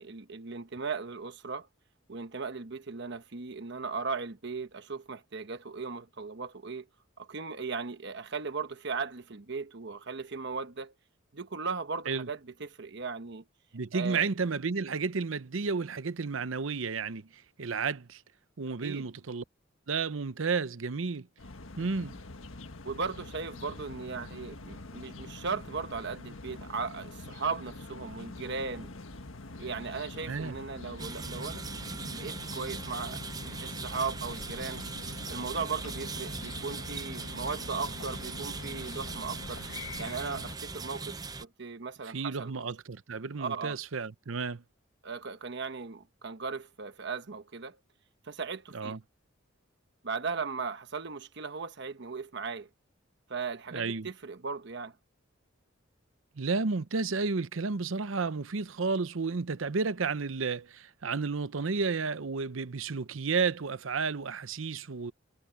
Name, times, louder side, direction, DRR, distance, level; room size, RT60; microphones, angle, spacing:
voice 1, 0.0-1.7 2.1-6.9 7.2-10.9 11.3-13.4 13.9-14.3 18.8-19.1 22.8-28.9 29.6-34.8 35.3-39.6 40.0-42.6 43.4-43.8 45.0-47.8 48.2-49.0 50.0-52.7 53.3-54.9, right 4 dB, 60° right, 1.1 m, -37 dB
voice 2, 13.7-17.3 17.6-18.2 18.6-19.4 19.9-21.3 21.8-22.1 30.3-30.5 42.1-44.6 48.7-49.0 53.7-54.1 56.4-65.1, right 4 dB, 75° right, 0.7 m, -32 dB
sound 1, 21.4-40.6, left 2 dB, 80° left, 1.5 m, -44 dB
sound 2, 31.0-41.5, right 4 dB, 20° right, 0.6 m, -40 dB
head